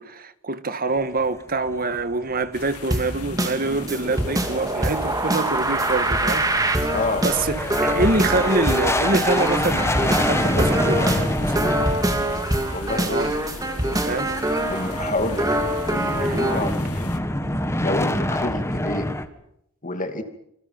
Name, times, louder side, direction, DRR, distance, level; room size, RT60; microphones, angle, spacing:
voice 1, 0.0-6.5 6.8-7.0 7.2-11.9 13.0-13.4 14.1-14.3 16.2-16.5 17.4-17.6, right 3 dB, 40° right, 1.6 m, -26 dB
sound 1, 0.9-2.6 2.9-3.0 3.4-3.5 3.9-19.2, left 1 dB, 10° left, 1.8 m, -27 dB
sound 2, 2.5-17.2, left 2 dB, 85° left, 2.1 m, -38 dB
sound 3, 2.9-16.7, right 1 dB, 15° right, 2.8 m, -24 dB
voice 2, 6.9-7.2 12.7-13.3 13.8-14.2 14.7-17.4 17.8-19.1 19.8-20.2, left 2 dB, 35° left, 2.7 m, -29 dB
27.0 x 26.5 x 5.9 m
head